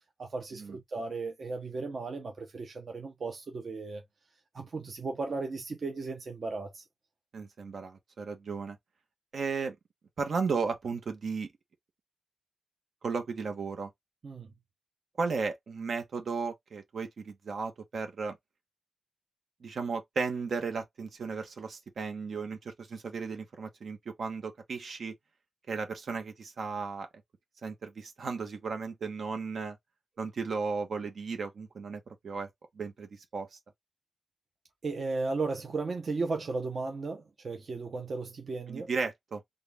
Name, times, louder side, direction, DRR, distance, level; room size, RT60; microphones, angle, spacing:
voice 1, 0.2-4.0 4.5-6.8 14.2-14.5 34.8-38.9, right 3 dB, 60° right, 0.9 m, -35 dB
voice 2, 7.3-8.8 9.3-9.8 10.2-11.5 13.0-13.9 15.2-18.4 19.6-25.1 25.7-27.1 27.6-29.8 30.2-32.5 32.7-33.6 38.7-39.4, right 4 dB, 75° right, 1.2 m, -35 dB
3.8 x 2.5 x 3.4 m
cardioid pair, 75°, 0 cm